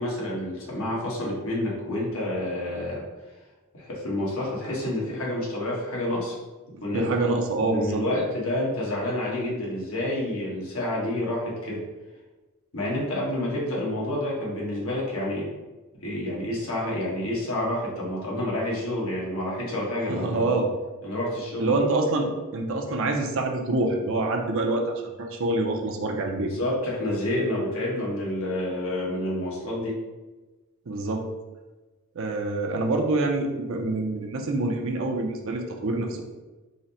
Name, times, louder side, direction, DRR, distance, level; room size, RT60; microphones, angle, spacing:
voice 1, 0.0-3.0 3.7-6.4 6.8-7.1 7.6-11.8 12.7-15.5 16.0-20.5 21.0-21.7 26.3-30.0, left 1 dB, 65° left, -5 dB, 1.3 m, -29 dB
voice 2, 6.9-8.0 20.1-20.7 21.6-24.9 25.1-26.5 30.9-31.3 32.2-36.2, right 2 dB, 65° right, 2 dB, 0.6 m, -26 dB
3.9 x 2.1 x 4.1 m, 1.2 s
head